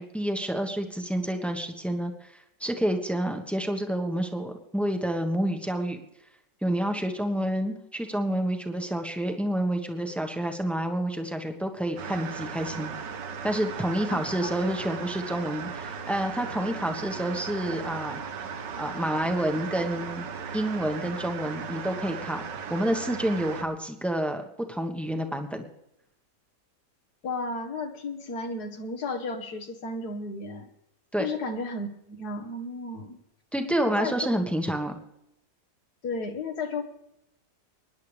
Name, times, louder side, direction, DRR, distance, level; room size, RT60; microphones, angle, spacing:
voice 1, 0.0-6.0 6.6-12.9 13.4-18.2 18.8-20.3 20.5-25.7 31.1-31.3 33.5-35.0, right 1 dB, ahead, 4 dB, 1.2 m, -29 dB
sound 1, 12.0-23.6, right 6 dB, 85° right, 1.7 m, -37 dB
voice 2, 27.2-30.7 31.2-33.2 33.7-34.2 36.0-36.8, left 3 dB, 65° left, 6 dB, 1.9 m, -33 dB
24.5 x 10.5 x 3.4 m, 0.83 s
omnidirectional pair, 1.8 m